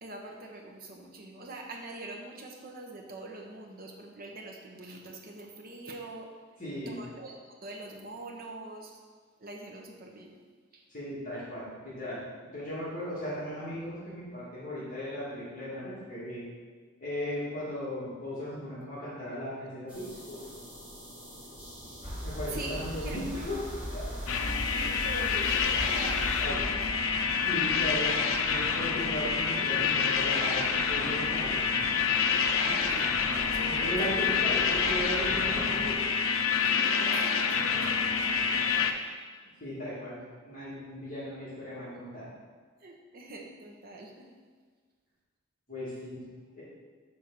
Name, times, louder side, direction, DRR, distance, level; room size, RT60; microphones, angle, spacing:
voice 1, 0.0-6.3 6.8-9.0 9.4-10.4 10.7-10.8 19.3-19.4 21.9-22.0 22.5-23.5 24.3-24.4 24.7-27.2 32.7-34.0 36.7-39.0 42.8-44.3, right 2 dB, 45° right, 1 dB, 0.9 m, -44 dB
voice 2, 6.6-7.0 10.9-16.4 17.0-20.4 22.2-23.6 23.9-24.0 24.4-24.6 26.4-26.6 27.4-28.1 28.5-30.6 30.8-31.5 33.7-36.0 39.6-40.2 40.4-42.3 45.7-46.2 46.6-46.7, equal, 40° left, -10 dB, 2.1 m, -37 dB
sound 1, 19.9-26.4, equal, 5° right, 1.6 m, -47 dB
sound 2, 22.0-36.0, equal, 25° right, 1.5 m, -40 dB
sound 3, 24.3-38.9, left 6 dB, 80° left, 0.5 m, -27 dB
6.6 x 3.6 x 6.1 m, 1.5 s
head